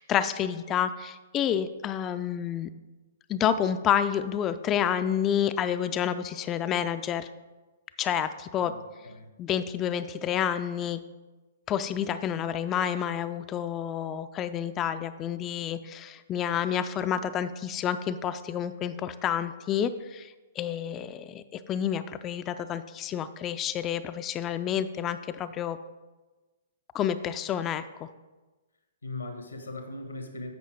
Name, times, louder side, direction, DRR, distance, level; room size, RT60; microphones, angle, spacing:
voice 1, 0.0-2.7 3.3-7.3 8.0-8.7 9.4-11.0 11.7-20.3 20.6-25.8 26.9-28.1, left 9 dB, 25° left, 12 dB, 0.3 m, -29 dB
voice 2, 8.6-9.3 29.0-30.5, left 2 dB, 80° left, 6 dB, 1.2 m, -39 dB
8.3 x 5.7 x 4.6 m, 1.2 s
figure-of-eight pair, 115°, 0 cm